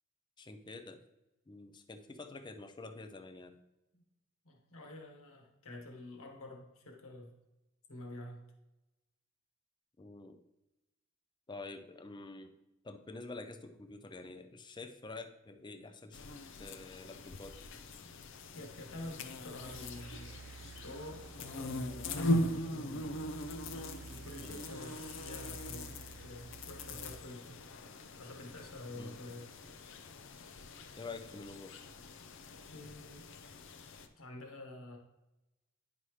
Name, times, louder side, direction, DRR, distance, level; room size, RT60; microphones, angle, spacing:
voice 1, 0.4-1.0 1.5-3.6 10.0-10.4 11.5-12.6 12.8-16.3 16.6-17.6 24.4-24.7 28.9-29.2 30.9-31.7, left 3 dB, 20° left, 8 dB, 0.5 m, -47 dB
voice 2, 4.4-7.3 7.9-8.4 15.8-15.9 18.5-23.1 23.7-26.0 26.2-27.6 28.1-29.5 32.7-33.3 34.2-35.0, left 1 dB, 80° left, 1 dB, 1.6 m, -48 dB
sound 1, 16.1-34.1, left 1 dB, 60° left, 0.6 m, -41 dB
sound 2, 19.6-27.2, right 5 dB, 75° right, 0.4 m, -52 dB
9.9 x 5.5 x 3.2 m, 0.95 s
head